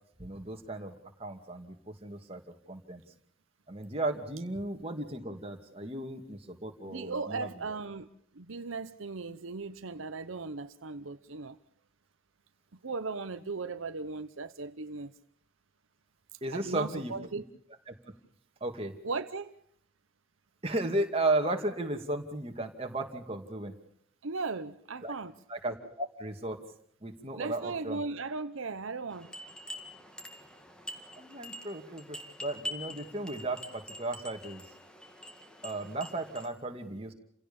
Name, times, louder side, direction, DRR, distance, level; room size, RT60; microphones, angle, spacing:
voice 1, 0.2-2.4 2.7-3.0 3.7-7.8 16.4-17.1 17.9-18.1 18.6-18.9 20.6-23.7 25.0-25.1 25.5-26.6 27.0-28.0 31.2-34.6 35.6-37.1, right 2 dB, 30° right, 2.5 m, -35 dB
voice 2, 6.8-8.1 8.3-11.6 12.8-15.1 16.5-17.4 19.0-19.5 24.2-25.3 27.3-29.3, right 4 dB, 75° right, 0.9 m, -37 dB
sound 1, 29.1-36.5, left 1 dB, 5° left, 2.0 m, -45 dB
29.5 x 17.0 x 7.1 m
head